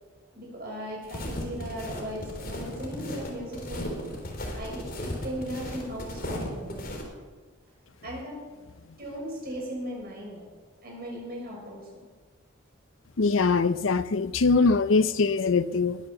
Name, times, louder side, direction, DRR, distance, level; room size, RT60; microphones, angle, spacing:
voice 1, 0.3-4.0 4.5-6.8 8.0-8.4 9.0-10.4 10.8-11.8, equal, 50° right, 6.7 m, -37 dB
sound 1, 1.0-7.0, left 1 dB, 45° left, 3.5 m, -36 dB
voice 2, 13.2-16.0, left 4 dB, 75° left, 0.6 m, -22 dB
21.0 x 9.7 x 7.0 m
head